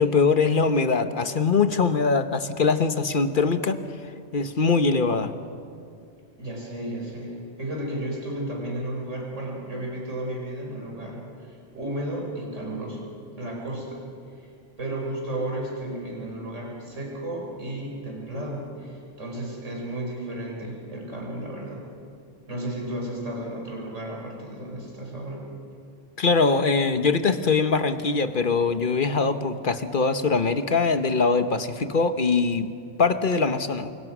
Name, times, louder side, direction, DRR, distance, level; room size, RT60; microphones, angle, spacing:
voice 1, 0.0-3.8 4.3-5.3 26.2-32.7 33.0-33.9, left 4 dB, 45° left, 9 dB, 1.2 m, -22 dB
voice 2, 6.4-13.0 13.4-14.0 14.8-21.8 22.5-25.4, right 1 dB, 80° right, -1 dB, 5.6 m, -33 dB
28.0 x 25.5 x 6.2 m, 2.3 s
omnidirectional pair, 1.3 m